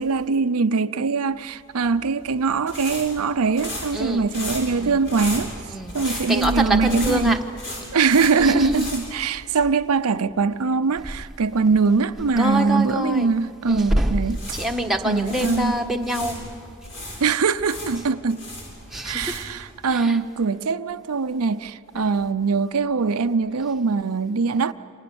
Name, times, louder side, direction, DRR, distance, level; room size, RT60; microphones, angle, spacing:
voice 1, 0.0-5.5 5.9-7.4 7.9-14.4 15.0-15.8 17.2-18.4 19.0-24.7, right 4 dB, 75° right, 0.6 m, -22 dB
sound 1, 1.8-9.9 10.1-10.3 14.1-16.4 16.8-19.6, left 1 dB, 60° left, 7.9 m, -34 dB
voice 2, 3.9-4.3 4.7-5.0 5.7-7.4 8.4-8.8 12.4-13.3 13.7-14.2 14.5-16.5 18.9-19.4 19.9-20.2 22.0-22.1, right 1 dB, ahead, 1.3 m, -25 dB
29.0 x 26.5 x 7.0 m
head